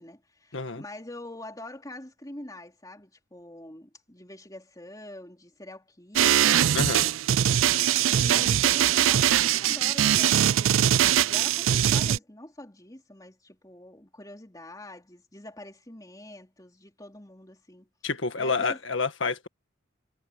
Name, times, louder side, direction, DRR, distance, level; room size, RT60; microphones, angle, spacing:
voice 1, 0.0-7.1 8.0-17.9 18.4-18.8, left 1 dB, 20° left, 3.6 m, -44 dB
voice 2, 0.5-0.8 6.7-7.1 18.0-19.5, left 4 dB, 75° left, 1.7 m, -28 dB
sound 1, 6.2-12.2, right 10 dB, 90° right, 0.4 m, -22 dB
head